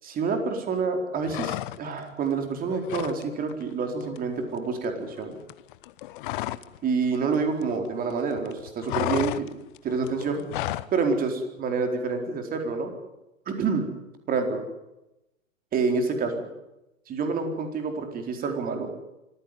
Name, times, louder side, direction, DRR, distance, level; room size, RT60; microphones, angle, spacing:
voice 1, 0.0-5.4 6.8-9.6 9.8-10.4 10.9-12.9 13.5-13.9 14.3-14.6 15.7-16.4 17.1-18.9, right 4 dB, 20° right, 5 dB, 4.3 m, -28 dB
sound 1, 1.2-2.1 2.4-3.2 3.5-3.7 4.0-6.8 7.0-8.1 8.4-10.9, left 16 dB, 40° left, 1.0 m, -33 dB
25.5 x 15.5 x 9.4 m, 0.93 s
figure-of-eight pair, 115°, 40 cm